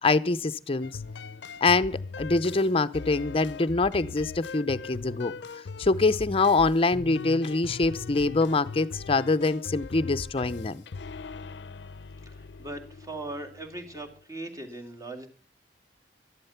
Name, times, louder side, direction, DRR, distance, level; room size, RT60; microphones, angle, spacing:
voice 1, 0.0-1.0 1.6-5.3 5.8-10.8, left 3 dB, 30° left, 0.6 m, -24 dB
sound 1, 0.8-14.2, left 4 dB, 80° left, 0.5 m, -40 dB
voice 2, 12.6-15.3, right 2 dB, 20° right, 2.4 m, -39 dB
13.0 x 11.5 x 5.7 m
head